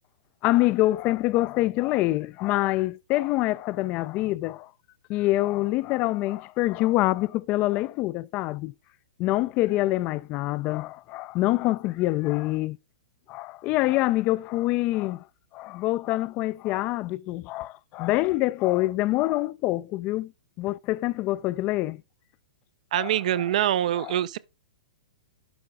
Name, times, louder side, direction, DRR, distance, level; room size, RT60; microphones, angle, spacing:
voice 1, 0.4-4.7 5.1-8.7 9.2-12.8 13.3-15.2 15.5-20.3 20.6-22.0 22.9-23.2 23.9-24.4, left 17 dB, 35° left, 0.3 m, -25 dB
voice 2, 22.9-24.4, right 12 dB, 60° right, 0.5 m, -24 dB
11.0 x 3.9 x 3.5 m
hypercardioid pair, 120°, 4 cm